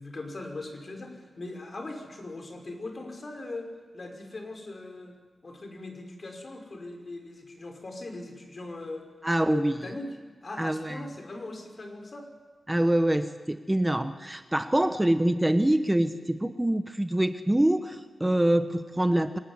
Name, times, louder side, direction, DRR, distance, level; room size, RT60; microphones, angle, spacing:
voice 1, 0.0-3.7 3.9-5.2 5.4-9.1 9.4-10.1 10.4-12.3, left 2 dB, 45° left, 4 dB, 5.5 m, -39 dB
voice 2, 9.2-9.8 10.6-11.0 12.7-19.4, right 1 dB, 15° right, 9 dB, 1.1 m, -25 dB
26.0 x 18.0 x 9.9 m, 1.4 s
cardioid pair, 65°, 0 cm